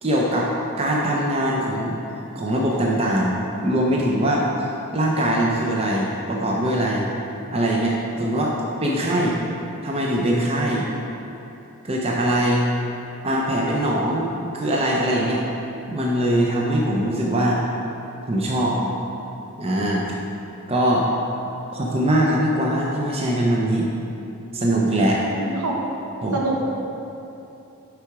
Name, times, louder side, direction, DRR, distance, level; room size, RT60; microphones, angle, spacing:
voice 1, 0.0-0.5 0.8-2.0 2.3-3.4 3.6-4.5 4.9-7.1 7.5-8.5 8.8-9.4 9.8-10.9 11.8-12.7 13.2-14.3 14.5-15.4 15.9-17.6 18.2-18.8 19.6-20.0 20.7-21.1 21.7-23.9 24.5-25.2 26.2-26.4, right 1 dB, 25° right, -3 dB, 0.5 m, -22 dB
voice 2, 25.3-25.7 26.3-26.6, right 3 dB, 75° right, -2 dB, 1.1 m, -25 dB
6.8 x 4.7 x 4.7 m, 2.9 s
head